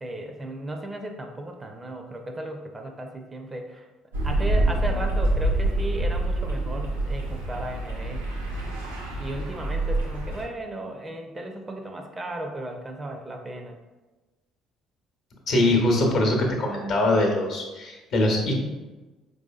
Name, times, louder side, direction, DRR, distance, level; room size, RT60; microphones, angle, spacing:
voice 1, 0.0-3.9 4.2-8.3 9.2-13.8, right 1 dB, 25° right, 4 dB, 0.5 m, -35 dB
sound 1, 4.1-10.4, right 1 dB, 90° right, 0.5 m, -26 dB
voice 2, 15.5-18.5, left 1 dB, 55° left, 0 dB, 0.9 m, -22 dB
4.5 x 2.7 x 2.3 m, 1.2 s
hypercardioid pair, 50°, 0 cm